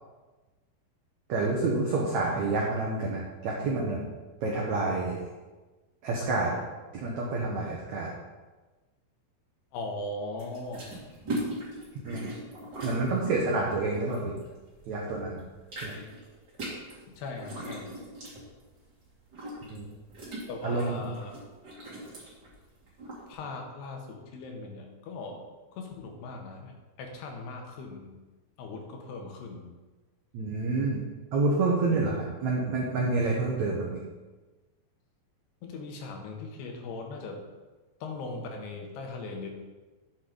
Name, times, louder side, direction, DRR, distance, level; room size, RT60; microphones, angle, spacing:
voice 1, 1.3-4.0 4.4-5.2 6.0-6.6 6.9-8.1 12.1-12.2 12.8-14.3 14.9-15.4 15.8-15.9 19.7-19.9 20.6-21.1 30.3-31.0 31.3-34.0, right 3 dB, 85° right, -3 dB, 1.6 m, -28 dB
voice 2, 9.7-10.9 17.2-18.0 20.5-21.4 23.3-25.4 25.7-28.1 28.6-29.7 31.9-32.1 35.6-37.4 38.0-39.5, left 3 dB, 75° left, 2 dB, 3.3 m, -39 dB
sound 1, 10.4-14.9 15.2-23.3, right 1 dB, 30° right, 2.4 m, -40 dB
11.5 x 7.7 x 4.0 m, 1.2 s
omnidirectional pair, 5.1 m